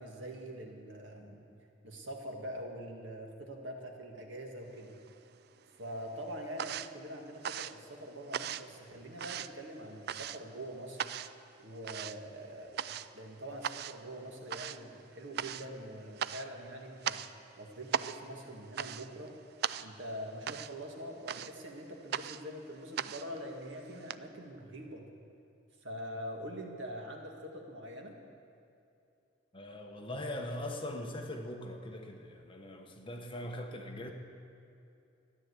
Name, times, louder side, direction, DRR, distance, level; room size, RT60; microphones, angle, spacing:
voice 1, 0.0-1.5 1.8-4.9 5.8-11.1 11.6-17.2 17.6-19.3 19.8-25.0 25.8-28.1, equal, 75° right, 2 dB, 1.9 m, -44 dB
sound 1, 4.8-5.6 5.9-24.2, right 9 dB, 55° right, 0.3 m, -40 dB
voice 2, 29.5-34.1, left 1 dB, 25° left, 2 dB, 1.1 m, -41 dB
13.5 x 10.5 x 8.2 m, 2.6 s
head